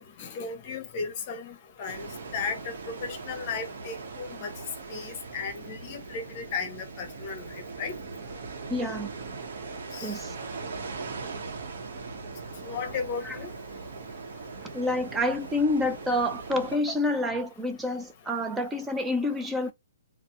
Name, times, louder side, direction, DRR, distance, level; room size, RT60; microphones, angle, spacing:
voice 1, 0.0-2.1 2.3-4.5 4.9-7.9 9.9-10.2 12.6-13.5, left 5 dB, 35° left, 0.8 m, -35 dB
sound 1, 1.9-16.8, right 4 dB, 60° right, 0.7 m, -40 dB
voice 2, 8.7-9.1 10.0-10.3 13.2-13.4 14.7-19.7, left 1 dB, 5° right, 0.4 m, -28 dB
2.7 x 2.0 x 3.4 m
hypercardioid pair, 145°, 0 cm